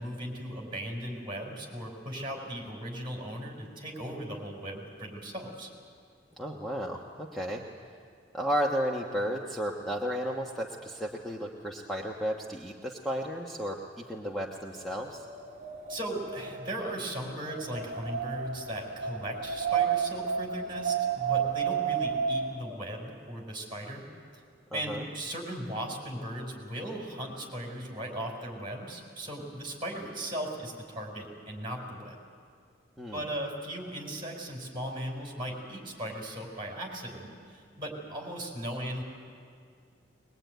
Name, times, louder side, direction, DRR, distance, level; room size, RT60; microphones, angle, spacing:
voice 1, 0.0-5.7 15.9-24.0 24.3-24.4 24.7-32.2 33.1-39.0, right 1 dB, 30° right, 1 dB, 5.0 m, -37 dB
voice 2, 6.4-7.6 8.3-15.3 24.7-25.1 33.0-33.2, equal, ahead, -2 dB, 1.3 m, -33 dB
Wind, 14.8-22.8, right 7 dB, 45° right, 1.4 m, -32 dB
21.5 x 21.5 x 9.3 m, 2.2 s
head